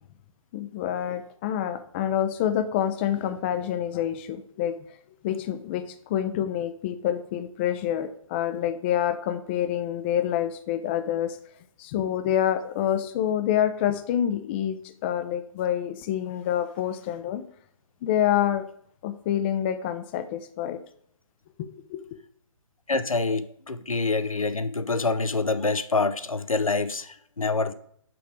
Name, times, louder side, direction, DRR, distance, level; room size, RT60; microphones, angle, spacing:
voice 1, 0.5-4.8 5.2-11.4 11.8-17.5 18.0-18.7 19.0-20.8 21.6-22.0, left 10 dB, 20° left, 11 dB, 0.4 m, -27 dB
voice 2, 22.9-27.7, left 3 dB, 90° left, 11 dB, 0.6 m, -26 dB
6.0 x 5.1 x 4.6 m, 0.63 s
figure-of-eight pair, 135°, 17 cm